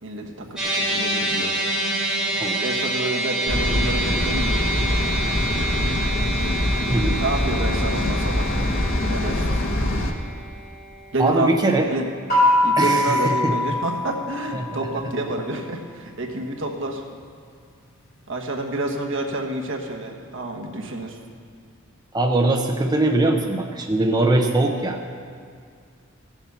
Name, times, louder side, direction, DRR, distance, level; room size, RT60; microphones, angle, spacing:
voice 1, 0.0-1.5 2.6-4.6 7.2-8.5 9.1-9.5 11.1-11.5 11.8-12.1 12.6-17.0 18.3-21.2, right 2 dB, 65° right, 2 dB, 1.3 m, -28 dB
sound 1, 0.6-13.0, right 1 dB, 5° right, 3.0 m, -28 dB
sound 2, 3.5-10.1, left 1 dB, 80° left, 1.1 m, -23 dB
voice 2, 6.9-7.2 11.2-11.9 12.8-13.5 14.5-14.9 22.1-25.0, right 2 dB, 20° right, 2 dB, 0.6 m, -21 dB
sound 3, 12.3-15.0, left 1 dB, 50° left, 3.4 m, -22 dB
14.5 x 7.2 x 6.9 m, 2.1 s
head